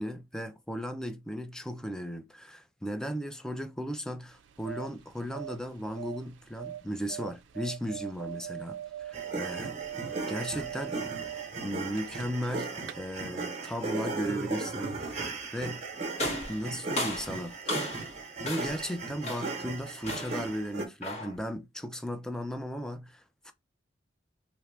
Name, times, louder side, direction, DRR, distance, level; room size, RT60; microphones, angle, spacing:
voice 1, 0.0-9.7 10.3-11.2 11.6-15.3 15.5-15.8 16.5-17.9 18.4-23.5, equal, 5° left, 0.4 m, -36 dB
sound 1, 4.3-12.5 12.8-12.9, right 11 dB, 80° right, 0.4 m, -41 dB
sound 2, 9.1-20.9, right 3 dB, 35° right, 0.9 m, -37 dB
sound 3, 16.2-18.1 18.4-18.9 19.2-19.6 20.0-20.5 21.0-21.4, left 1 dB, 40° left, 1.6 m, -35 dB
2.8 x 2.4 x 3.3 m
head